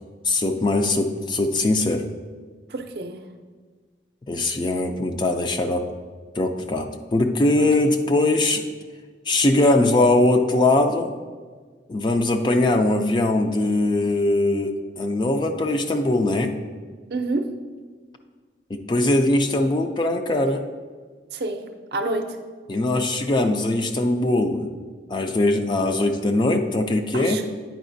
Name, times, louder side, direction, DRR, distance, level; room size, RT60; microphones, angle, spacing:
voice 1, 0.2-2.0 4.3-5.8 6.4-8.6 9.3-11.1 11.9-16.5 18.9-20.6 22.7-24.7 25.1-27.4, left 2 dB, 25° left, 5 dB, 0.3 m, -21 dB
voice 2, 2.7-3.3 7.6-7.9 17.1-17.5 21.3-21.6 21.9-22.4 27.1-27.4, right 2 dB, 60° right, 6 dB, 0.5 m, -28 dB
9.0 x 4.9 x 2.6 m, 1.5 s
head